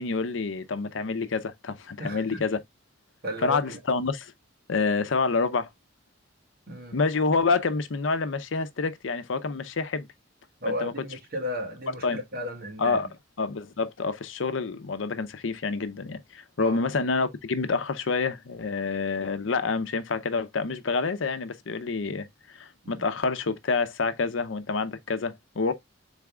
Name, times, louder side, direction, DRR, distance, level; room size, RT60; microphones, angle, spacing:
voice 1, 0.0-2.6 3.4-4.3 4.7-5.7 6.9-10.1 10.7-10.9 12.0-12.2 12.8-13.1 13.4-25.7, left 4 dB, 75° left, 0.6 m, -28 dB
voice 2, 2.0-2.4 3.2-3.8 6.7-7.0 10.6-13.0 16.6-16.8 22.8-23.0, left 1 dB, 50° right, 1.7 m, -34 dB
4.0 x 3.5 x 3.6 m
head